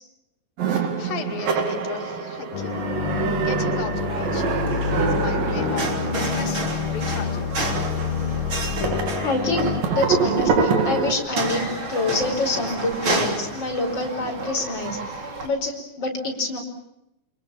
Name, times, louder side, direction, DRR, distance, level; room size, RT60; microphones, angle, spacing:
sound 1, 0.6-11.1, right 5 dB, 80° right, 4.0 m, -26 dB
voice 1, 0.7-2.9 3.4-7.6, left 6 dB, 85° left, 3 dB, 4.0 m, -36 dB
sound 2, 2.5-9.8, left 8 dB, 55° left, 1.6 m, -28 dB
sound 3, 4.0-15.5, right 2 dB, 35° right, 4.3 m, -31 dB
voice 2, 9.2-15.0 15.4-16.6, left 2 dB, 30° left, 2 dB, 5.6 m, -26 dB
29.0 x 25.5 x 7.2 m, 0.84 s
omnidirectional pair, 3.9 m